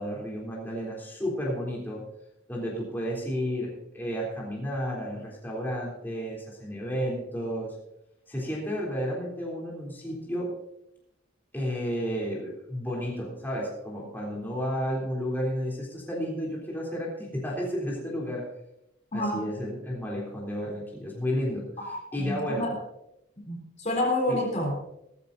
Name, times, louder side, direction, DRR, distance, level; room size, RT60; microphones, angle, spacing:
voice 1, 0.0-2.1 2.5-7.8 8.3-10.5 11.5-18.5 19.1-22.7 24.3-24.4, equal, 10° left, -4 dB, 3.4 m, -32 dB
voice 2, 19.1-19.5 21.8-22.7 23.5-24.8, left 1 dB, 35° left, 0 dB, 3.8 m, -29 dB
18.5 x 14.0 x 2.7 m, 0.84 s
head